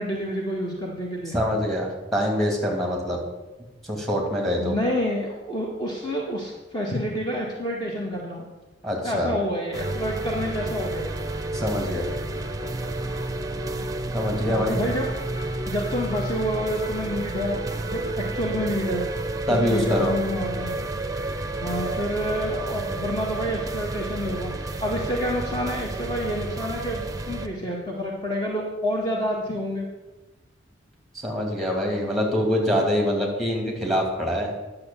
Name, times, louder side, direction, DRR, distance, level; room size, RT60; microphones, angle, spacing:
voice 1, 0.0-1.3 4.6-8.5 9.0-11.1 14.5-15.1 15.7-19.0 19.5-20.7 21.6-24.5 24.8-29.9, equal, 25° left, -2 dB, 1.6 m, -28 dB
voice 2, 1.3-3.2 3.9-4.8 8.8-9.3 11.5-12.1 14.1-14.8 19.5-20.1 31.1-34.5, equal, ahead, 0 dB, 2.5 m, -24 dB
sound 1, 9.7-27.5, right 2 dB, 20° right, 0.7 m, -30 dB
10.5 x 7.0 x 7.0 m, 1.1 s
head